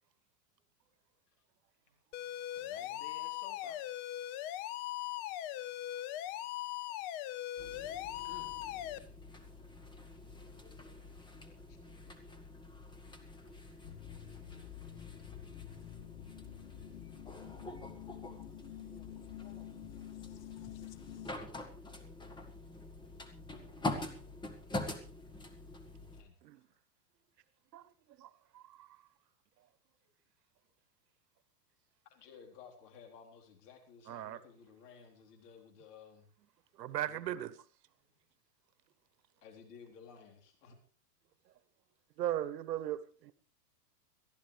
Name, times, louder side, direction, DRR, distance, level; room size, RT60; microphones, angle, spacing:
voice 1, 1.8-2.5 4.7-6.0 6.3-6.8 7.5-8.3 9.0-9.1 10.4-10.7 11.7-12.6 13.0-13.8 14.0-14.5 20.7-21.1 21.9-22.0 29.8-29.9 38.0-38.1 39.3-39.4 41.2-41.3, right 7 dB, 45° right, 5.1 m, -82 dB
sound 1, 2.1-9.0, left 13 dB, 35° left, 0.7 m, -40 dB
voice 2, 2.5-3.8 8.3-8.5 11.7-11.8 26.1-26.4 32.1-36.3 37.0-37.3 39.4-40.8, left 6 dB, 70° left, 4.2 m, -55 dB
sound 2, 7.6-26.2, left 2 dB, 10° left, 1.6 m, -46 dB
sound 3, 13.8-21.3, left 15 dB, 55° left, 1.1 m, -49 dB
voice 3, 28.2-28.9 34.1-34.4 36.8-37.5 42.2-43.3, right 12 dB, 85° right, 1.1 m, -38 dB
22.5 x 13.5 x 3.3 m
supercardioid pair, 140°, 48 cm